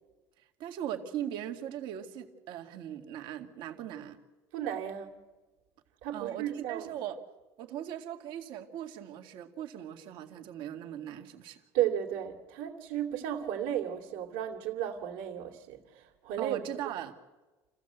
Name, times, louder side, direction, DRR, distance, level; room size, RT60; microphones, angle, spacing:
voice 1, 0.4-4.2 6.1-7.2 7.6-11.6 16.4-17.1, right 10 dB, 60° right, 5 dB, 2.2 m, -39 dB
voice 2, 4.5-5.2 6.0-6.9 11.7-16.6, right 10 dB, 80° right, -4 dB, 2.6 m, -34 dB
29.0 x 15.5 x 8.1 m, 1.2 s
cardioid pair, 165°, 9 cm